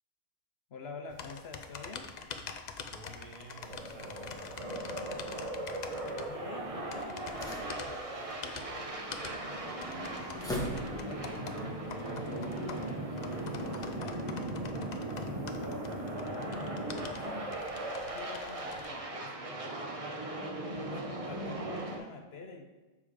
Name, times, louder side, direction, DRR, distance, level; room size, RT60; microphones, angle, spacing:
voice 1, 0.7-2.1 6.1-9.0 9.3-9.7 10.2-14.2 15.1-15.9 16.2-16.8 17.2-17.7 18.0-20.1 20.8-22.7, left 4 dB, 55° left, 4 dB, 0.9 m, -48 dB
sound 1, 1.1-18.9, left 5 dB, 85° left, 0.3 m, -46 dB
voice 2, 2.9-5.1, right 3 dB, 85° right, 0 dB, 1.8 m, -51 dB
sound 2, 3.6-22.0, right 1 dB, 30° right, 0.7 m, -38 dB
sound 3, 6.7-11.3, equal, 5° left, 1.1 m, -44 dB
7.1 x 4.9 x 4.9 m, 1.2 s
omnidirectional pair, 1.4 m